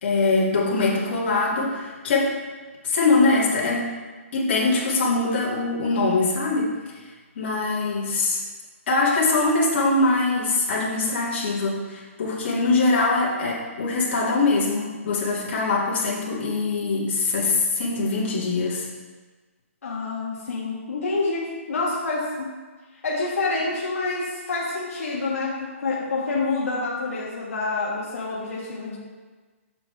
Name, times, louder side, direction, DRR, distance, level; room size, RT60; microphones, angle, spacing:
voice 1, 0.0-2.4 2.8-3.9 4.3-7.1 7.4-8.4 8.9-18.9, left 3 dB, 50° left, -5 dB, 2.4 m, -23 dB
voice 2, 19.8-22.6 23.0-29.0, left 3 dB, 80° left, -4 dB, 1.5 m, -27 dB
7.7 x 6.4 x 3.5 m, 1.3 s
hypercardioid pair, 160°, 8 cm